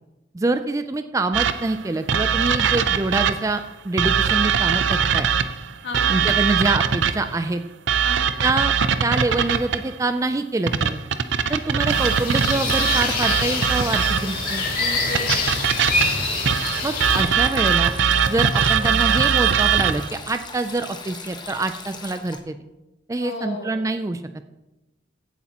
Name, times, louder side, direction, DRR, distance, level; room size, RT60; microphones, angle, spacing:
voice 1, 0.3-5.3 6.1-7.6 8.4-8.7 9.0-11.0 11.5-14.7 16.8-17.9 18.3-22.6 23.1-24.4, right 2 dB, 15° right, 8 dB, 0.3 m, -25 dB
sound 1, 1.3-3.6 4.0-7.3 7.9-9.9 10.7-14.4 15.2-20.1, right 7 dB, 80° right, 0.6 m, -21 dB
voice 2, 5.8-6.3 8.0-8.3 14.8-15.4 23.2-23.7, left 2 dB, 75° left, 1 dB, 2.0 m, -33 dB
sound 2, 11.9-17.2, left 2 dB, 50° left, 4.3 m, -25 dB
Sink (filling or washing), 12.4-22.4, left 4 dB, 25° left, 0.9 m, -38 dB
15.5 x 8.2 x 2.9 m, 1.0 s
head